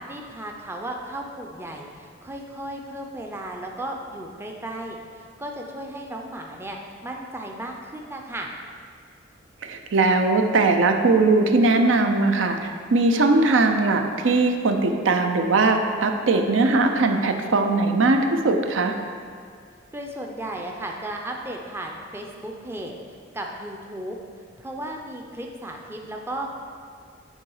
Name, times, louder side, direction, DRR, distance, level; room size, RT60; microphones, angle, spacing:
voice 1, 0.1-6.8 7.0-8.5 19.9-24.2 24.6-26.5, right 1 dB, 10° right, 1 dB, 0.5 m, -35 dB
voice 2, 9.6-18.9, right 3 dB, 75° right, 5 dB, 0.5 m, -20 dB
9.0 x 3.8 x 4.7 m, 2.1 s
head